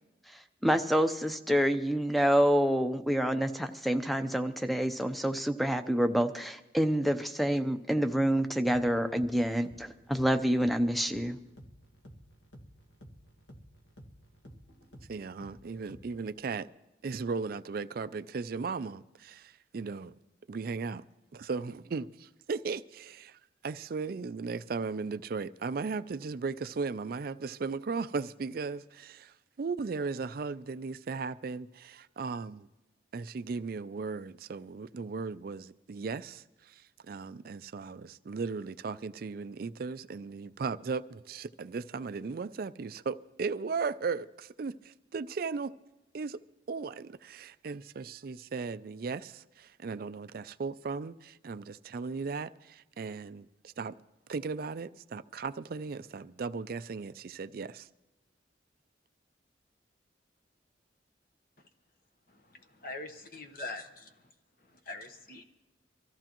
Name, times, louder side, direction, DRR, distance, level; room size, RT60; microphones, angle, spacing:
voice 1, 0.6-11.4, equal, ahead, 0.6 m, -27 dB
sound 1, 9.0-16.4, equal, 75° left, 1.8 m, -54 dB
voice 2, 15.1-16.7 17.0-20.1 20.5-21.0 21.3-32.7 33.1-45.7 46.1-46.4 46.7-53.9 54.3-57.9, right 4 dB, 50° right, 0.4 m, -37 dB
voice 3, 62.8-64.0 64.9-65.4, left 2 dB, 50° left, 1.1 m, -41 dB
24.5 x 14.5 x 3.0 m
head